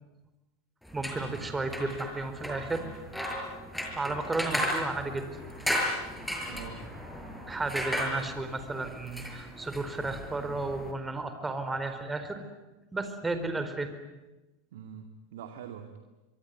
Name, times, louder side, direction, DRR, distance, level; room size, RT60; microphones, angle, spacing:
sound 1, 0.8-10.9, equal, 5° left, 6.6 m, -35 dB
voice 1, 0.9-2.8 3.9-5.3 7.5-12.4 12.9-13.9, right 3 dB, 15° right, 8 dB, 4.4 m, -33 dB
voice 2, 6.4-6.9 14.7-16.0, right 8 dB, 70° right, 6 dB, 2.3 m, -44 dB
25.5 x 23.0 x 9.5 m, 1.1 s
hypercardioid pair, 95°, 0 cm